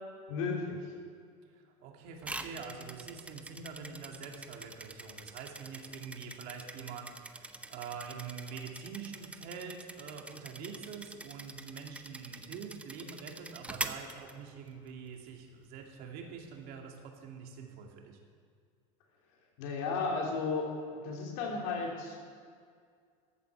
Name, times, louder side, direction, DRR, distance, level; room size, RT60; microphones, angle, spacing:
voice 1, 0.3-0.8 19.6-22.2, left 4 dB, 75° left, -1 dB, 3.2 m, -34 dB
voice 2, 1.8-18.2, right 6 dB, 60° right, 1 dB, 2.4 m, -45 dB
sound 1, 2.2-14.9, right 2 dB, 5° right, 0.7 m, -45 dB
14.0 x 8.4 x 7.0 m, 2.1 s
supercardioid pair, 115°, 17 cm